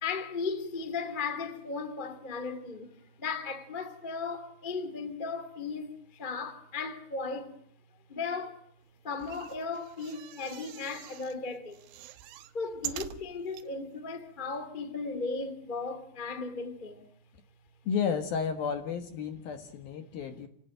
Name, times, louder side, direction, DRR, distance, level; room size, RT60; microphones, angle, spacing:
voice 1, 0.0-7.6 8.1-8.7 9.0-11.9 12.5-17.1 19.3-19.6 20.1-20.2, left 4 dB, 30° left, 0.9 m, -36 dB
sound 1, 9.1-11.4 11.7-13.7 14.3-14.4 14.5-14.6, right 12 dB, 70° right, 3.4 m, -44 dB
voice 2, 17.9-20.5, left 6 dB, 65° left, 2.6 m, -32 dB
28.5 x 18.0 x 9.1 m
omnidirectional pair, 5.9 m